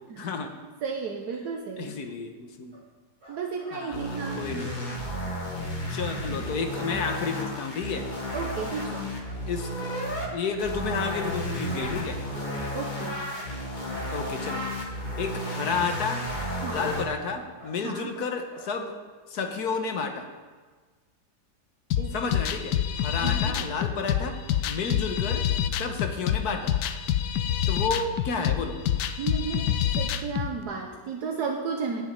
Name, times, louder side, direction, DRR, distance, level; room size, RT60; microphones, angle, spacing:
voice 1, 0.2-0.5 1.8-2.7 3.7-5.0 5.9-8.1 9.5-9.9 10.3-12.2 14.1-14.6 15.2-16.2 16.7-19.0 19.3-20.3 22.1-24.3 24.7-25.4 25.8-26.7 27.7-28.7, left 5 dB, 65° left, 5 dB, 1.5 m, -31 dB
voice 2, 0.8-2.0 3.3-4.4 8.3-9.1 12.7-13.3 16.6-16.9 17.8-18.1 22.0-22.2 23.2-23.6 29.2-32.0, right 5 dB, 70° right, 2 dB, 1.5 m, -33 dB
sound 1, 2.7-2.8 3.2-3.8 4.8-5.6 6.0-6.6 6.9-7.6 7.9-8.5 8.9-9.4 9.8-10.4 10.7-11.4 11.7-11.9 12.3-12.5 12.9-13.5 13.9-14.2 15.4-15.9 16.3-16.9 17.2-17.8 18.1-18.7, equal, 40° right, 4.0 m, -49 dB
sound 2, 3.9-10.3 10.6-17.0, equal, 30° left, 1.8 m, -33 dB
sound 3, 21.9-30.5, left 10 dB, 85° left, 1.3 m, -27 dB
8.8 x 7.4 x 8.9 m, 1.4 s
omnidirectional pair, 1.8 m